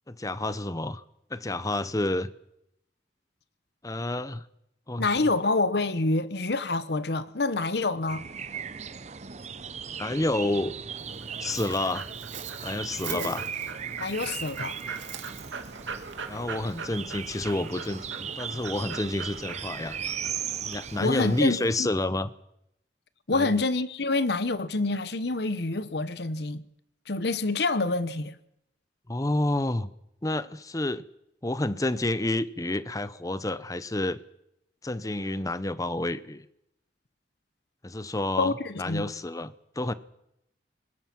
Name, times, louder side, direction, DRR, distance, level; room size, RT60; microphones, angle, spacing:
voice 1, 0.1-1.0 1.3-2.3 3.8-4.4 4.9-5.1 10.0-10.7 11.4-12.1 12.6-13.5 16.3-20.0 20.6-22.3 23.3-23.6 29.1-29.9 30.2-31.0 31.4-34.2 34.8-36.4 37.8-39.9, left 2 dB, 20° left, 0.7 m, -29 dB
voice 2, 5.0-8.2 13.1-13.3 14.0-14.8 21.0-21.9 23.3-26.6 27.1-28.3 38.4-39.1, left 3 dB, 60° left, 1.0 m, -27 dB
sound 1, 8.1-21.5, right 7 dB, 35° right, 0.7 m, -37 dB
Dog, 11.0-21.8, right 6 dB, 90° right, 2.1 m, -41 dB
24.0 x 20.5 x 6.0 m
head